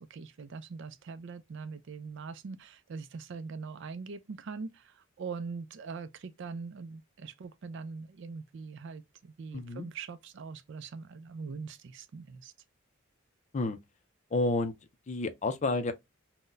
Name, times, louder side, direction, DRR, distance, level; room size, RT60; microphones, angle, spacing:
voice 1, 0.0-12.5, right 4 dB, 60° right, 0.4 m, -42 dB
voice 2, 9.5-9.9 13.5-13.8 14.3-14.7 15.1-15.9, left 2 dB, 35° left, 0.4 m, -30 dB
3.9 x 2.1 x 2.5 m
head